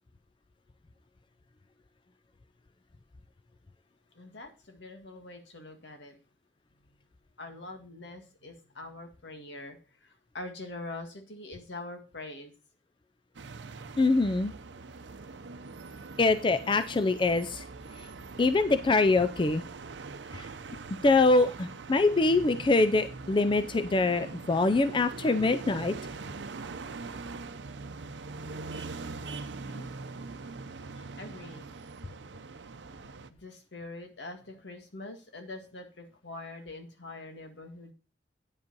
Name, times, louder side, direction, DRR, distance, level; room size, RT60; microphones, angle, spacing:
voice 1, 4.1-6.2 6.8-7.1 7.4-12.5 29.6-29.9 30.9-31.7 33.3-37.9, left 2 dB, 80° left, 5 dB, 1.8 m, -44 dB
sound 1, 13.3-33.3, right 3 dB, 80° right, 0.7 m, -42 dB
voice 2, 14.0-14.5 16.2-17.6 18.4-19.6 20.3-20.5 21.0-26.0, left 3 dB, 30° left, 10 dB, 0.4 m, -24 dB
9.5 x 5.3 x 5.3 m, 0.34 s
head